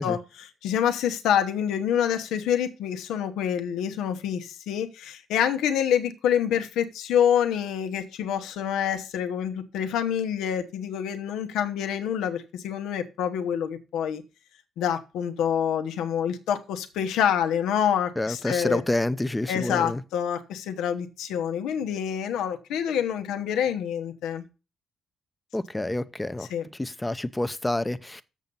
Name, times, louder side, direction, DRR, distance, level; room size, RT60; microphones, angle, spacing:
voice 1, 0.0-14.2 14.8-18.8 19.5-24.4 26.5-26.7, left 9 dB, 85° left, 1.0 m, -27 dB
voice 2, 18.2-20.0 25.5-26.5 26.8-28.2, left 1 dB, 10° left, 0.7 m, -28 dB
7.4 x 6.9 x 5.4 m
cardioid pair, 90°, 0 cm